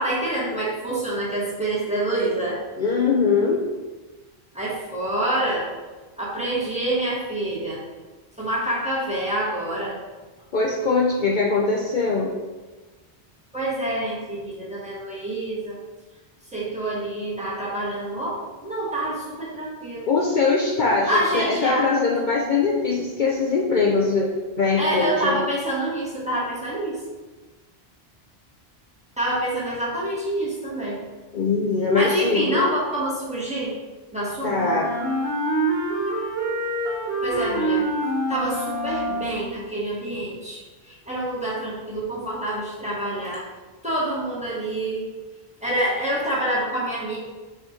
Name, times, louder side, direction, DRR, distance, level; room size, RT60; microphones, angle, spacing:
voice 1, 0.0-2.6 4.5-5.7 6.2-7.8 8.4-10.0 13.5-15.8 16.5-20.1 21.1-21.9 24.8-27.0 29.2-31.0 31.9-33.8 34.1-34.7 37.2-37.8 38.3-43.4 43.8-45.1 45.6-47.2, right 1 dB, 5° right, -7 dB, 1.6 m, -27 dB
voice 2, 2.8-3.6 10.5-12.3 20.1-25.4 31.3-32.7 34.4-34.9, left 4 dB, 55° left, -2 dB, 0.7 m, -22 dB
Wind instrument woodwind instrument, 34.5-39.5, right 1 dB, 70° right, 1.8 m, -26 dB
4.8 x 4.2 x 5.1 m, 1.3 s
omnidirectional pair, 1.1 m